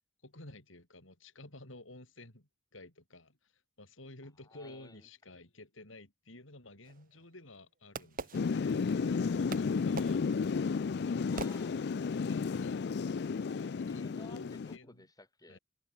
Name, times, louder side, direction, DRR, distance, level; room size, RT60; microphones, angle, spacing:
voice 1, 0.2-3.5 3.8-11.4 12.1-12.9 13.4-15.1 15.5-15.6, left 2 dB, 80° left, 5.2 m, -53 dB
voice 2, 4.4-5.1 11.3-12.5 13.9-15.6, left 2 dB, 20° left, 6.0 m, -56 dB
Fireworks, 6.8-9.1 9.5-12.2, right 4 dB, 45° right, 1.1 m, -45 dB
Thunder / Rain, 8.3-14.8, left 5 dB, 55° left, 0.4 m, -33 dB
head